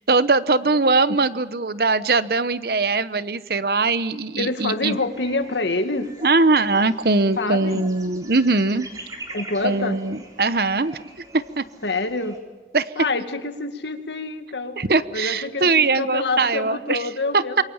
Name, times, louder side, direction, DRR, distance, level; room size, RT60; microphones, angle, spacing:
voice 1, 0.1-5.0 6.2-8.9 9.6-11.1 11.3-11.6 12.7-12.9 14.8-17.6, right 3 dB, 55° right, 14 dB, 0.9 m, -21 dB
voice 2, 4.4-6.1 7.4-7.8 9.3-10.0 11.8-12.4 13.0-14.8 15.1-17.6, left 3 dB, 85° left, 8 dB, 2.0 m, -26 dB
sound 1, 4.8-12.4, right 1 dB, 20° right, 3.9 m, -43 dB
27.0 x 23.5 x 7.2 m, 1.3 s
head